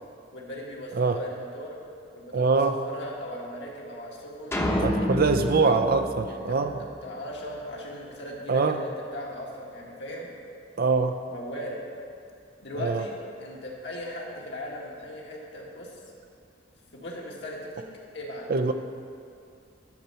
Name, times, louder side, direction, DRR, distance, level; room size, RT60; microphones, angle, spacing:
voice 1, 0.3-1.8 2.1-4.6 5.1-5.7 6.3-10.3 11.3-11.8 12.6-15.9 16.9-17.9 18.1-18.5, equal, 65° left, -3 dB, 1.7 m, -38 dB
voice 2, 2.3-2.8 4.8-6.7 8.5-8.8 10.8-11.1 12.8-13.0 18.5-18.7, right 4 dB, 50° right, 8 dB, 0.5 m, -23 dB
sound 1, 4.5-7.0, left 1 dB, 15° left, 0.9 m, -29 dB
11.5 x 4.5 x 6.8 m, 2.4 s
head